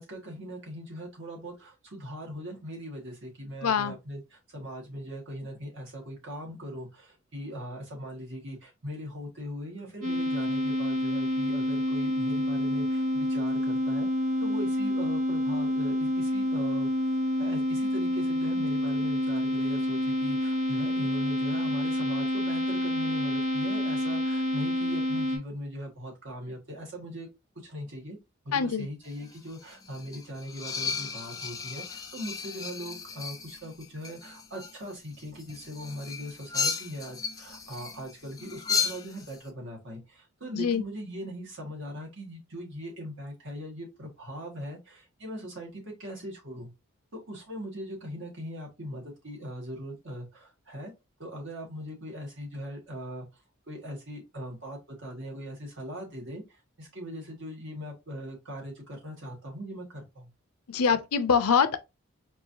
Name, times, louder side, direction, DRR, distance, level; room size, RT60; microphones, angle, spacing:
voice 1, 0.0-14.1 14.4-16.9 17.4-27.3 27.6-28.2 28.4-46.7 47.1-50.9 51.2-53.3 53.7-60.3, equal, 55° right, 1.7 m, -40 dB
voice 2, 3.6-3.9 28.5-28.9 40.5-40.8 60.7-61.8, left 6 dB, 90° left, 0.6 m, -24 dB
sound 1, 10.0-25.4, left 1 dB, 75° right, 1.7 m, -28 dB
sound 2, 29.1-39.4, left 6 dB, 15° left, 0.5 m, -35 dB
4.6 x 2.7 x 2.8 m
head